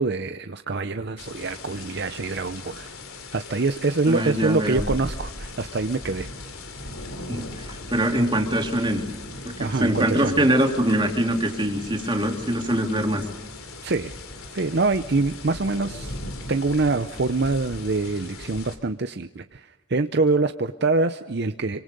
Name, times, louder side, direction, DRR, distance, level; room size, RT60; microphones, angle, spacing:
voice 1, 0.0-2.9 3.3-6.3 9.6-10.4 13.8-14.2 14.5-16.1 16.5-21.8, right 3 dB, 50° right, 9 dB, 0.7 m, -25 dB
sound 1, 1.2-18.8, left 2 dB, 80° left, 3.3 m, -38 dB
voice 2, 4.1-4.8 7.3-9.0 9.4-13.2, right 1 dB, 20° right, 1 dB, 3.1 m, -23 dB
26.5 x 25.0 x 5.4 m, 1.1 s
head